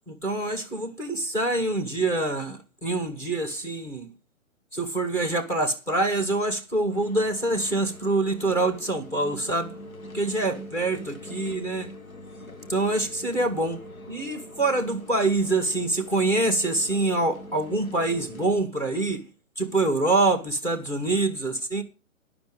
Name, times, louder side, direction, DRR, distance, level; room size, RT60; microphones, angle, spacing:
voice 1, 0.1-4.1 4.7-9.7 10.1-11.9 12.7-13.8 14.1-19.3 19.6-21.8, right 2 dB, 5° left, 1.2 m, -25 dB
sound 1, 6.9-18.5, left 1 dB, 80° left, 1.7 m, -43 dB
12.0 x 6.1 x 6.4 m
figure-of-eight pair, 130°, 41 cm